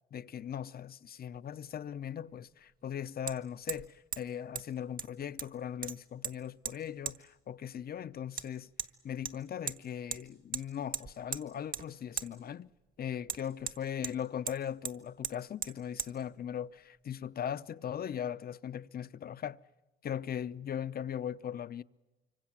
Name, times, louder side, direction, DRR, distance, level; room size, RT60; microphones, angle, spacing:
voice 1, 0.1-8.7 9.0-12.7 13.0-19.6 20.0-21.8, left 9 dB, 50° left, 0.7 m, -39 dB
Hammer, 1.3-1.4 3.3-3.4 3.7-3.9 4.1-4.2 4.6-4.7 5.0-5.5 5.8-6.3 6.7-6.8 7.1-7.2 8.4-8.5 8.8-8.9 9.3-9.8 10.1-10.2 10.5-10.6 10.9-11.4 11.7-11.9 12.2-12.3 13.3-14.2 14.5-14.6 14.8-15.0 15.2-15.4 15.6-15.7 16.0-16.1, right 7 dB, 45° right, 1.6 m, -37 dB
25.5 x 25.0 x 7.3 m
cardioid pair, 90°, 20 cm